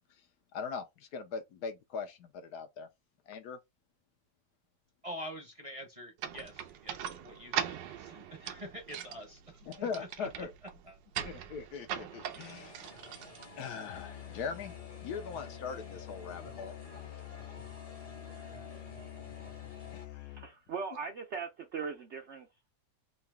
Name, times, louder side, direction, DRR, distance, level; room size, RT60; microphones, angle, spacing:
voice 1, 0.5-2.9 3.3-3.6 9.7-10.5 11.2-12.8 13.6-14.7 15.0-16.7, left 5 dB, 70° left, 1.1 m, -40 dB
voice 2, 5.0-10.5 10.8-11.0, equal, 30° right, 0.7 m, -46 dB
sound 1, 6.2-14.0, right 9 dB, 85° right, 1.3 m, -41 dB
sound 2, 12.4-20.1, left 1 dB, 30° left, 0.8 m, -52 dB
Musical instrument, 13.9-20.7, left 14 dB, 85° left, 0.6 m, -47 dB
voice 3, 20.1-22.7, right 5 dB, 70° right, 0.6 m, -40 dB
3.8 x 2.7 x 3.5 m
omnidirectional pair, 1.9 m